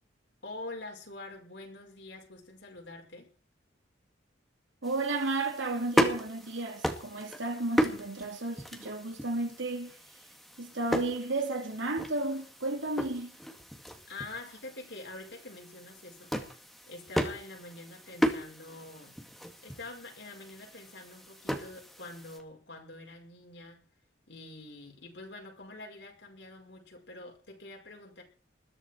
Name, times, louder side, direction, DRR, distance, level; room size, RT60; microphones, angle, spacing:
voice 1, 0.4-3.3 14.1-16.3 16.9-19.2 19.6-23.8 24.3-28.2, left 2 dB, 70° left, 5.4 m, -46 dB
sound 1, 4.8-22.4, equal, ahead, 2.1 m, -35 dB
voice 2, 4.8-9.9 10.6-13.3, right 2 dB, 80° right, 2.8 m, -33 dB
21.0 x 14.0 x 4.6 m
head